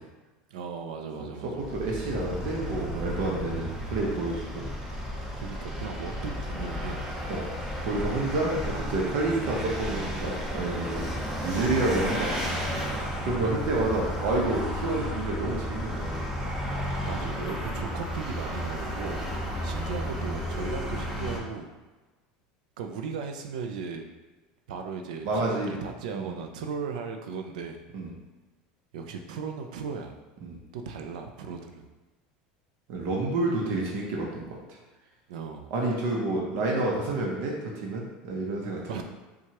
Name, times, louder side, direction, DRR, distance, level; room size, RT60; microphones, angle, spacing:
voice 1, 0.5-1.6 5.4-7.0 13.4-13.5 17.0-19.3 19.6-21.7 22.8-24.0 24.7-27.8 28.9-30.2 30.7-31.9 35.3-35.7 38.9-39.0, right 5 dB, 85° right, 4 dB, 0.4 m, -37 dB
Vehicle, 1.6-21.4, equal, 10° right, 0.8 m, -33 dB
voice 2, 1.7-4.6 7.3-7.4 7.8-11.0 11.4-12.3 13.2-16.3 17.4-17.6 19.0-19.1 25.2-25.8 26.1-26.4 27.9-28.1 30.4-30.6 32.9-34.6 35.7-38.8, right 2 dB, 65° right, -2 dB, 0.8 m, -29 dB
4.5 x 2.3 x 2.9 m, 1.2 s
supercardioid pair, 120°, 4 cm